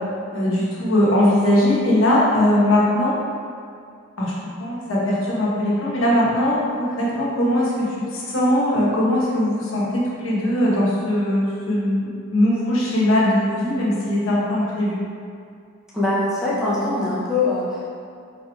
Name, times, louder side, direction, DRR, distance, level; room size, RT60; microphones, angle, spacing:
voice 1, 0.3-3.2 4.2-4.3 4.6-7.9 8.1-15.0, left 1 dB, 75° left, -6 dB, 0.9 m, -20 dB
voice 2, 15.9-17.9, left 2 dB, 5° right, -9 dB, 0.6 m, -22 dB
4.1 x 3.7 x 2.3 m, 2.3 s
head